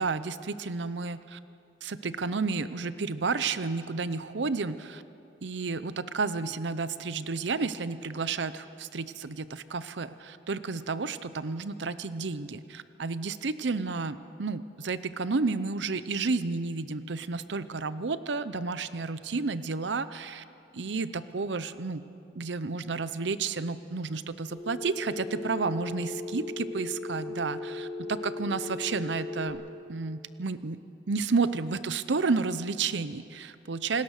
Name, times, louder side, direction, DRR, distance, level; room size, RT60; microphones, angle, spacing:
voice 1, 0.0-1.4 1.8-5.0 5.4-20.4 20.7-22.1 22.3-29.6 29.9-30.8 31.1-34.0, right 4 dB, 75° right, 13 dB, 0.7 m, -31 dB
Telephone, 24.5-29.5, left 2 dB, 15° left, 6.5 m, -37 dB
27.5 x 19.0 x 6.6 m, 2.5 s
head